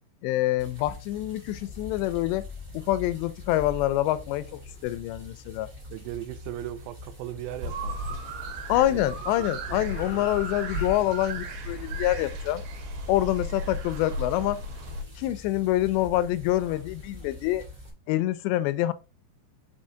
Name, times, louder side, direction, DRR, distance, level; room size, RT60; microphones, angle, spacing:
voice 1, 0.2-2.5 2.7-4.5 4.8-5.7 8.7-12.6 13.1-14.6 15.2-17.7 18.1-18.9, left 15 dB, 85° left, 2.6 m, -26 dB
sound 1, 0.6-17.9, left 2 dB, 15° right, 1.4 m, -46 dB
sound 2, 1.5-8.0 8.2-11.6 13.0-14.3 14.9-17.6, left 4 dB, 20° left, 0.9 m, -46 dB
voice 2, 5.9-8.2 8.9-9.3 9.8-10.3, right 14 dB, 80° right, 2.8 m, -38 dB
sound 3, 7.6-15.0, right 1 dB, 65° right, 2.3 m, -35 dB
5.5 x 5.4 x 3.7 m
omnidirectional pair, 5.2 m